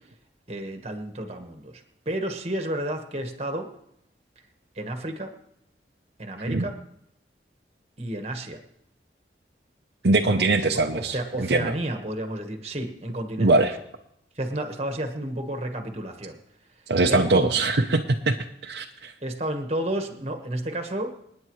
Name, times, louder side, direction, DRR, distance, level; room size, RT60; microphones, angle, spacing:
voice 1, 0.5-3.7 4.7-5.3 6.2-6.8 8.0-8.6 10.2-13.5 14.3-16.4 17.1-17.5 19.2-21.1, right 1 dB, 35° right, 5 dB, 1.4 m, -31 dB
voice 2, 10.0-11.7 13.4-13.8 16.9-18.4 18.6-19.1, right 2 dB, 65° right, 3 dB, 0.7 m, -22 dB
27.5 x 9.6 x 3.2 m, 0.78 s
head